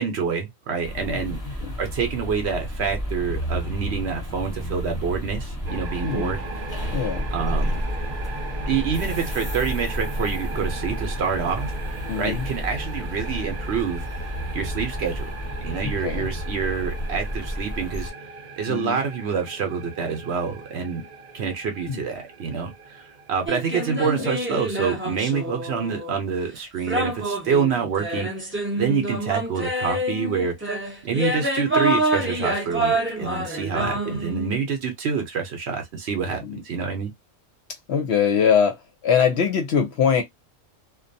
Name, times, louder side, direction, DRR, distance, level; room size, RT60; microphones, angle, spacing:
voice 1, 0.0-1.4 1.8-6.4 7.3-7.8 8.7-11.7 12.2-14.1 14.5-15.3 15.6-18.1 18.6-21.0 21.3-30.8 31.0-37.1, right 6 dB, 60° right, 0.8 m, -27 dB
sound 1, 0.8-18.1, equal, 20° left, 0.9 m, -31 dB
voice 2, 1.1-1.8 6.0-6.4 6.9-7.3 12.1-12.5 15.8-16.3 18.7-19.0 21.9-22.1 24.2-24.3 33.7-34.2 36.4-36.6 37.9-40.2, left 7 dB, 60° left, 0.8 m, -23 dB
sound 2, 5.7-24.0, right 3 dB, 85° right, 0.3 m, -38 dB
sound 3, 23.5-26.2 26.9-34.6, right 1 dB, 15° right, 0.5 m, -27 dB
2.5 x 2.2 x 2.6 m
omnidirectional pair, 1.4 m